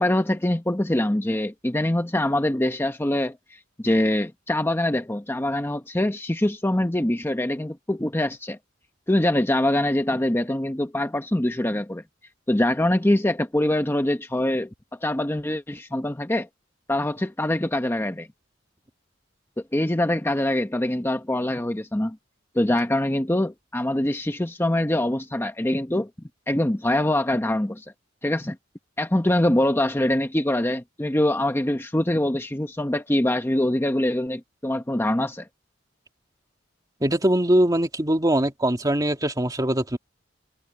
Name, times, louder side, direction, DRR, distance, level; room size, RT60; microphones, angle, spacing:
voice 1, 0.0-8.6 9.1-12.0 12.5-14.7 15.0-16.5 16.9-18.3 19.7-22.2 22.5-26.1 26.5-27.8 28.2-28.6 29.0-35.5, left 1 dB, 10° left, 0.8 m, -24 dB
voice 2, 37.0-40.0, right 1 dB, 20° right, 2.3 m, -22 dB
head